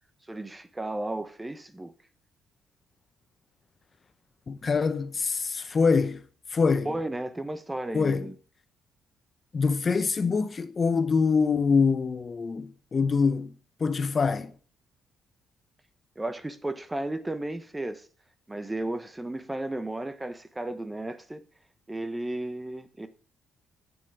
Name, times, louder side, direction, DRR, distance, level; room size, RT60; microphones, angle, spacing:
voice 1, 0.3-1.9 6.8-8.3 16.2-18.1 18.5-21.4 21.9-23.1, right 1 dB, 15° right, 0.8 m, -34 dB
voice 2, 4.5-6.2 6.5-6.9 7.9-8.3 9.5-13.5 13.8-14.5, left 5 dB, 40° left, 0.7 m, -25 dB
8.8 x 7.2 x 3.4 m
cardioid pair, 90°, 0 cm